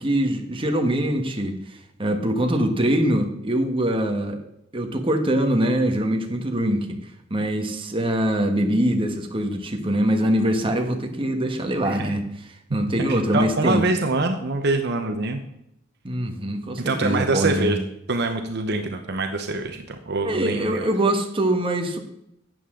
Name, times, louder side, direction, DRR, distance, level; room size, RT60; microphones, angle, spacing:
voice 1, 0.0-4.4 4.7-6.9 7.3-12.2 12.7-13.8 16.0-17.7 20.2-22.0, right 1 dB, 25° right, 4 dB, 1.3 m, -23 dB
voice 2, 13.1-15.4 16.8-17.8 18.1-20.9, right 2 dB, 60° right, 6 dB, 0.9 m, -25 dB
12.5 x 8.7 x 3.8 m, 0.78 s
head